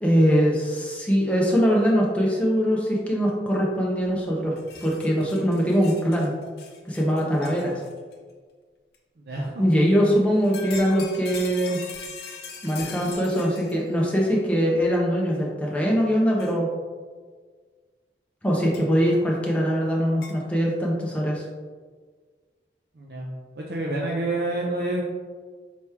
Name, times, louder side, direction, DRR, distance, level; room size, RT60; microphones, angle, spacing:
voice 1, 0.0-4.5 4.8-6.3 6.8-7.8 9.6-11.8 12.6-16.7 18.4-21.4, equal, 5° left, -3 dB, 0.6 m, -22 dB
sound 1, 4.0-4.1 4.4-8.1 8.9-9.0 10.3-13.9 14.8-14.9 16.4-16.5 18.7-18.8 20.2-20.4, left 5 dB, 65° left, 0.6 m, -41 dB
voice 2, 23.0-23.3 23.6-25.0, right 2 dB, 60° right, -2 dB, 0.5 m, -28 dB
4.4 x 3.0 x 3.5 m, 1.5 s
head